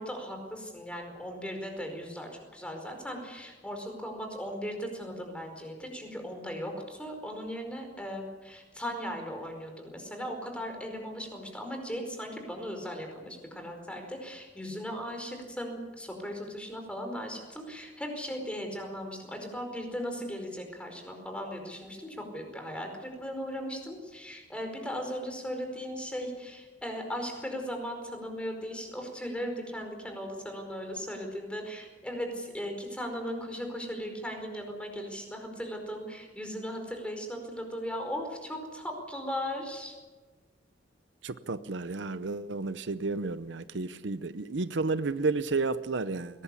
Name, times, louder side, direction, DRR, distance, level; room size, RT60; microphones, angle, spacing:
voice 1, 0.0-40.0, equal, 5° left, 4 dB, 4.8 m, -37 dB
voice 2, 41.2-46.4, right 3 dB, 70° right, 13 dB, 0.7 m, -32 dB
21.5 x 18.5 x 8.5 m, 1.3 s
head